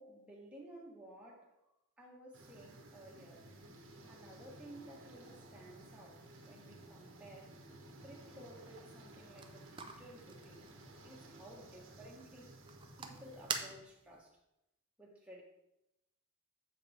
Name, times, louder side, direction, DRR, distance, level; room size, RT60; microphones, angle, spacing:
voice 1, 0.0-1.5 2.0-3.5 4.1-7.6 8.0-10.7 11.0-12.5 13.0-14.3 15.0-15.4, right 1 dB, 5° right, -4 dB, 1.4 m, -55 dB
sound 1, 2.3-13.7, right 1 dB, 60° right, 1.1 m, -56 dB
wuc frontglass open and close, 9.0-14.2, right 5 dB, 20° right, 0.5 m, -47 dB
7.5 x 5.1 x 4.4 m, 0.87 s
head